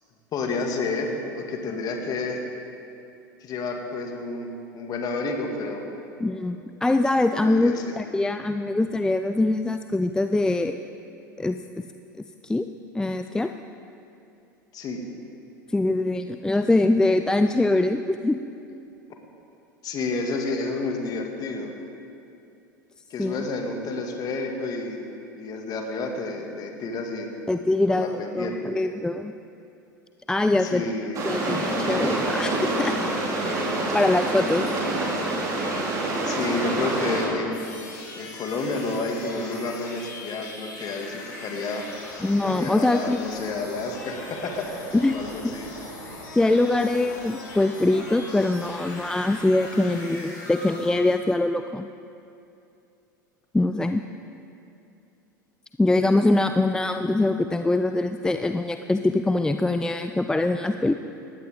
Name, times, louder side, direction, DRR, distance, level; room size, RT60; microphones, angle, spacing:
voice 1, 0.3-2.4 3.4-5.8 7.4-7.9 14.7-15.0 19.8-21.7 23.1-25.0 25.3-27.3 27.9-28.6 30.6-31.4 36.2-37.7 38.2-41.8 42.4-45.7, left 3 dB, 35° left, 2 dB, 2.3 m, -30 dB
voice 2, 6.2-10.8 11.4-11.8 12.4-12.7 12.9-13.5 15.7-18.4 23.2-23.4 27.5-29.3 30.3-30.9 31.3-33.0 33.9-34.7 42.2-43.2 44.9-45.2 45.4-45.5 46.3-51.9 53.5-54.0 55.8-60.9, left 2 dB, 5° left, 8 dB, 0.4 m, -23 dB
sound 1, 31.1-37.3, right 2 dB, 30° right, 4.1 m, -26 dB
sound 2, 37.5-50.9, left 2 dB, 65° left, 4.6 m, -40 dB
19.5 x 15.0 x 3.8 m, 2.6 s
figure-of-eight pair, 80°, 11 cm